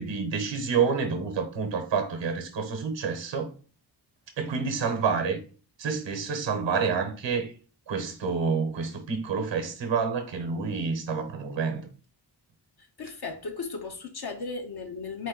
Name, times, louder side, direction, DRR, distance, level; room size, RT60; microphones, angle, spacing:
voice 1, 0.0-3.5 4.4-5.4 5.8-7.5 7.9-11.8, right 5 dB, 80° right, 0.9 m, -28 dB
voice 2, 12.8-15.3, left 4 dB, 60° left, 0.7 m, -36 dB
4.1 x 2.6 x 3.8 m
wide cardioid pair, 100°, 44 cm